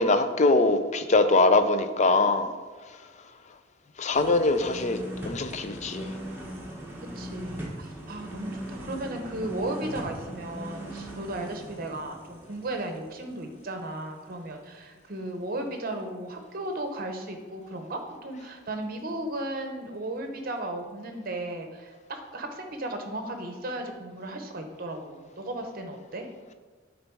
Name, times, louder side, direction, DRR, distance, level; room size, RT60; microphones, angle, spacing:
voice 1, 0.0-2.5 4.0-6.1, left 3 dB, 35° left, 9 dB, 0.4 m, -23 dB
sound 1, 4.1-14.0 14.3-14.4, equal, 10° right, 1.2 m, -39 dB
voice 2, 7.0-26.3, right 1 dB, 45° right, 5 dB, 0.8 m, -35 dB
8.9 x 3.9 x 4.6 m, 1.4 s
head